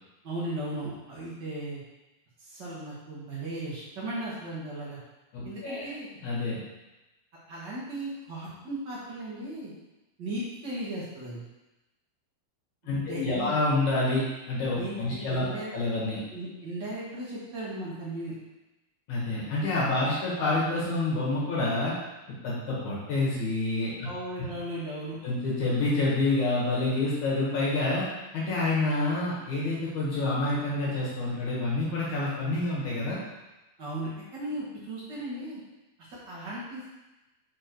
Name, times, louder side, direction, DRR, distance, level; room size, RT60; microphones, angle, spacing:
voice 1, 0.2-1.8 2.4-5.0 5.4-6.1 7.5-9.7 10.2-11.4 13.1-13.5 14.7-15.7 16.3-18.3 24.0-25.2 33.8-35.6 36.1-36.9, right 1 dB, 85° right, -8 dB, 0.9 m, -36 dB
voice 2, 5.3-5.8 6.2-6.6 12.8-15.4 15.7-16.2 19.1-21.9 22.4-24.1 25.2-28.0 28.3-33.2, left 2 dB, 60° left, -6 dB, 2.6 m, -28 dB
6.1 x 4.5 x 4.5 m, 1.0 s
omnidirectional pair, 4.4 m